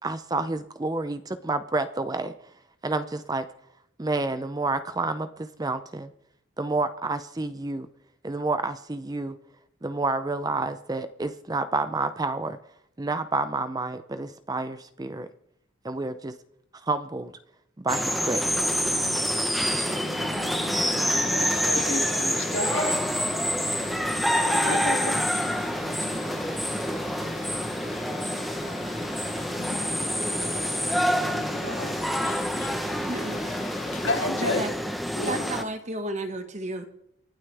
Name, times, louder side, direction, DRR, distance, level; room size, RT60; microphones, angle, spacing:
voice 1, 0.0-2.3 2.8-3.4 4.0-6.1 6.6-7.9 8.2-9.4 9.8-12.6 13.0-15.3 15.8-16.3 16.8-17.3 17.8-18.6 19.7-20.0, right 3 dB, 20° right, 11 dB, 0.5 m, -29 dB
sound 1, 17.9-35.6, equal, ahead, 0.9 m, -27 dB
sound 2, 20.0-34.1, left 3 dB, 35° left, 0.9 m, -39 dB
voice 2, 20.8-23.0 24.3-25.3 30.5-30.6 31.2-31.9 34.0-34.6 35.1-35.5, left 2 dB, 70° left, 2 dB, 2.9 m, -31 dB
voice 3, 33.1-33.4 34.4-34.7 35.3-36.8, right 2 dB, 35° right, 7 dB, 1.5 m, -32 dB
28.5 x 12.0 x 3.4 m, 0.77 s
head